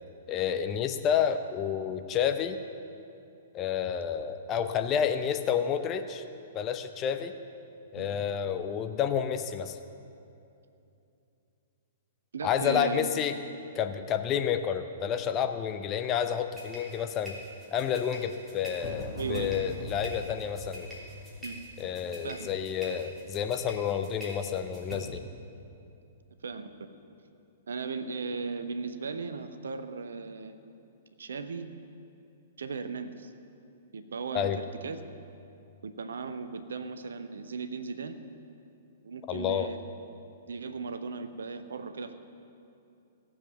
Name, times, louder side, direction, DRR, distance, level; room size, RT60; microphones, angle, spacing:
voice 1, 0.3-2.6 3.5-6.2 6.5-7.3 7.9-9.8 12.4-13.3 13.7-17.4 17.7-21.0 21.8-25.2 34.3-34.6 39.3-39.7, left 8 dB, 25° left, 8 dB, 0.7 m, -30 dB
voice 2, 12.3-13.1 19.2-19.6 21.4-21.6 22.2-22.5 26.4-26.7 27.7-30.6 31.2-31.7 32.6-33.3 33.9-35.0 35.8-38.2 39.0-39.8 40.5-42.1, right 4 dB, 65° right, 10 dB, 0.8 m, -36 dB
sound 1, 16.5-25.0, equal, 5° right, 3.3 m, -42 dB
16.5 x 7.4 x 7.0 m, 2.7 s
figure-of-eight pair, 110°, 0 cm